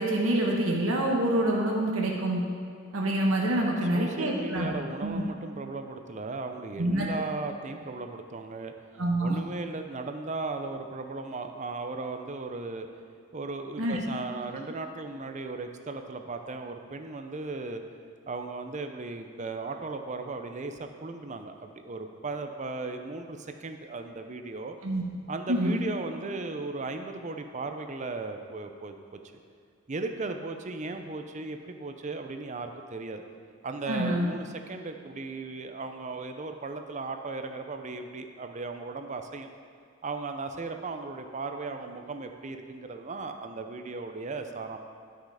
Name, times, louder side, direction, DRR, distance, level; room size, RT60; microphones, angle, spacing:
voice 1, 0.0-2.4 2.9-4.7 5.0-5.2 6.8-7.1 9.0-9.4 13.8-14.0 24.8-25.0 25.5-25.8 33.9-34.3, right 1 dB, 80° right, -1 dB, 1.3 m, -26 dB
voice 2, 3.9-8.7 9.2-12.9 13.3-17.8 18.3-24.8 25.3-29.2 29.9-33.2 33.6-39.5 40.0-44.8, right 3 dB, 35° right, 6 dB, 0.6 m, -36 dB
10.5 x 6.4 x 4.9 m, 2.4 s
head